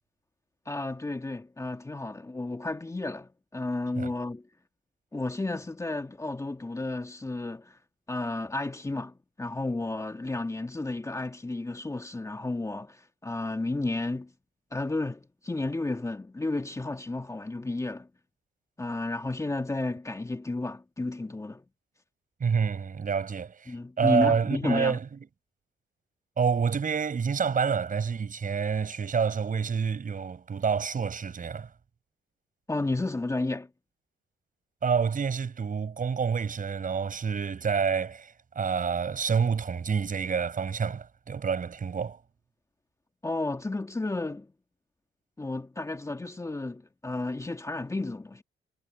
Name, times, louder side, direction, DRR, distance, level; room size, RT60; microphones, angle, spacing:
voice 1, 0.7-4.4 5.1-7.8 8.1-14.3 14.7-18.1 18.8-21.6 23.7-25.0 32.7-33.7 43.2-44.5 45.4-48.4, left 2 dB, 15° left, 2.2 m, -32 dB
voice 2, 22.4-25.1 26.4-31.7 34.8-42.2, right 6 dB, 40° right, 7.2 m, -28 dB
cardioid pair, 90°, 20 cm